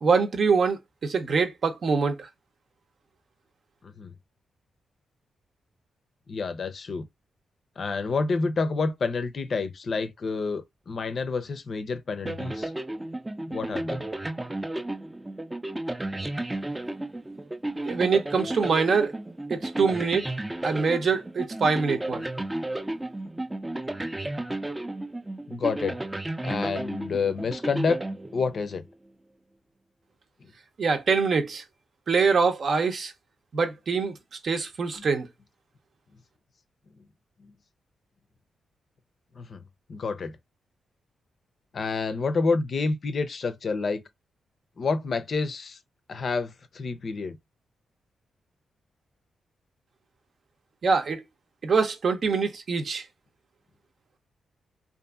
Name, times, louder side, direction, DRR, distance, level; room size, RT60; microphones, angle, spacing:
voice 1, 0.0-2.3 17.9-19.1 19.5-20.3 20.6-22.2 30.8-31.6 32.1-33.1 33.5-34.1 34.4-35.3 50.8-51.2 51.6-53.0, right 5 dB, 60° right, 0.7 m, -24 dB
voice 2, 6.3-7.1 7.8-12.7 13.5-14.0 25.5-26.0 26.4-28.0 28.3-28.8 30.4-30.5 39.4-39.6 39.9-40.4 41.7-44.0 44.8-45.8 46.1-47.4, left 4 dB, 55° left, 0.5 m, -28 dB
sound 1, 12.2-28.8, right 1 dB, 15° right, 0.4 m, -33 dB
2.6 x 2.5 x 2.3 m
cardioid pair, 60°, 0 cm